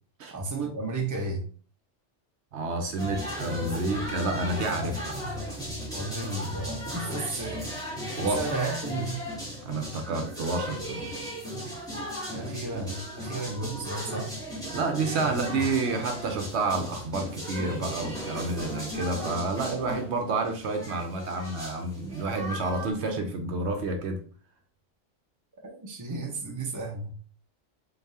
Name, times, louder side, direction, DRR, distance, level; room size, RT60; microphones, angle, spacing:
voice 1, 0.3-1.5 5.9-7.6 8.3-9.2 12.3-14.3 15.2-15.4 25.6-27.2, right 3 dB, 20° right, 0 dB, 0.7 m, -33 dB
voice 2, 2.5-5.2 8.2-8.4 9.6-11.1 14.7-24.2, right 3 dB, 65° right, 4 dB, 0.9 m, -29 dB
sound 1, 3.0-22.9, equal, 5° left, 1.6 m, -36 dB
3.9 x 3.5 x 2.7 m, 0.42 s
omnidirectional pair, 1.3 m